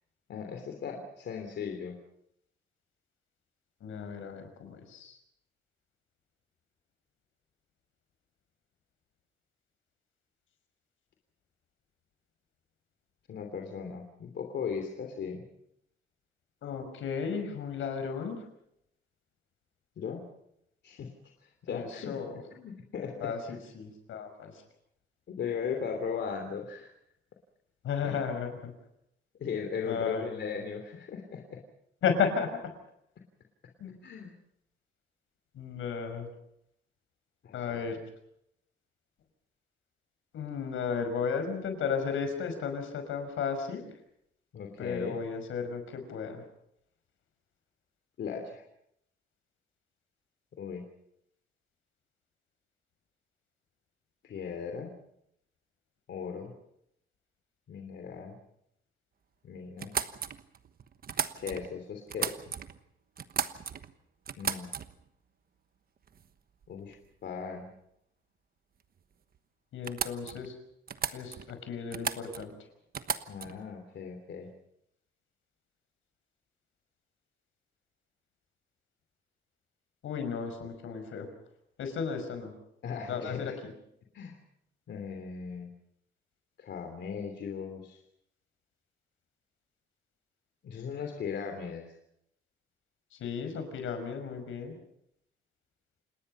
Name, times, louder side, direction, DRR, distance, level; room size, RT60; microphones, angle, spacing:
voice 1, 0.3-2.0 13.3-15.4 20.0-20.3 20.8-21.1 21.4-22.2 22.5-23.6 25.3-26.9 28.0-28.2 29.4-31.6 34.0-34.3 37.4-37.9 44.5-45.2 48.2-48.6 50.6-50.8 54.2-54.9 56.1-56.5 57.7-58.4 59.4-60.0 61.3-62.5 64.4-64.7 66.7-67.0 67.2-67.7 73.3-74.5 82.8-83.5 84.1-84.4 84.9-85.7 86.6-88.0 90.6-91.9, left 6 dB, 60° left, 3 dB, 3.1 m, -38 dB
voice 2, 3.8-5.2 16.6-18.4 21.7-22.4 23.2-24.5 27.8-28.7 29.9-30.5 32.0-32.6 33.8-33.9 35.5-36.3 37.5-38.0 40.3-43.8 44.8-46.4 69.7-70.5 71.1-72.5 80.0-81.3 81.8-82.5 83.1-83.7 93.1-94.8, left 6 dB, 80° left, 7 dB, 5.6 m, -34 dB
sound 1, 59.8-61.7 62.1-62.8 63.2-63.9 64.3-65.1 66.1-66.3 66.6-67.0 69.0-69.1 69.3-69.4 69.8-70.5 70.9-71.6 71.9-72.5 72.9-73.6, right 7 dB, 50° right, 1.2 m, -35 dB
28.5 x 19.5 x 5.6 m, 0.75 s
cardioid pair, 130°, 20 cm